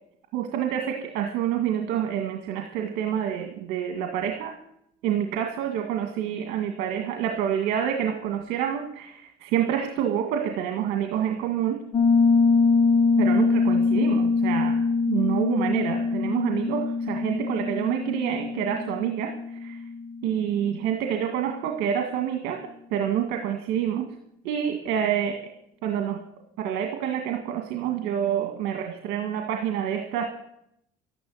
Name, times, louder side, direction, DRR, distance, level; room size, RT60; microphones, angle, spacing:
voice 1, 0.3-4.5 5.0-11.8 13.2-14.8 15.1-19.3 19.6-19.8 20.2-22.6 22.9-24.0 24.4-25.4 25.8-26.2 26.6-30.2, right 9 dB, 80° right, 3 dB, 1.9 m, -27 dB
Piano, 11.9-20.4, left 4 dB, 30° left, 1.4 m, -23 dB
12.5 x 11.0 x 7.9 m, 0.76 s
cardioid pair, 105°, 17 cm